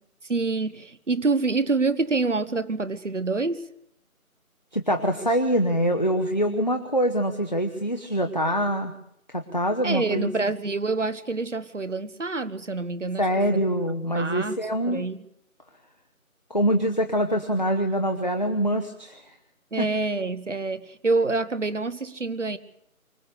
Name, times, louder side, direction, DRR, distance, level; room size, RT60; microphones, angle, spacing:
voice 1, 0.3-3.6 9.8-13.6 14.1-14.6 14.8-15.2 19.7-22.6, right 3 dB, 55° right, 15 dB, 1.4 m, -26 dB
voice 2, 4.7-8.9 9.3-10.3 13.2-15.0 16.5-19.2 19.8-19.9, equal, 30° left, 5 dB, 1.0 m, -24 dB
25.0 x 16.0 x 6.7 m, 0.75 s
figure-of-eight pair, 175°, 43 cm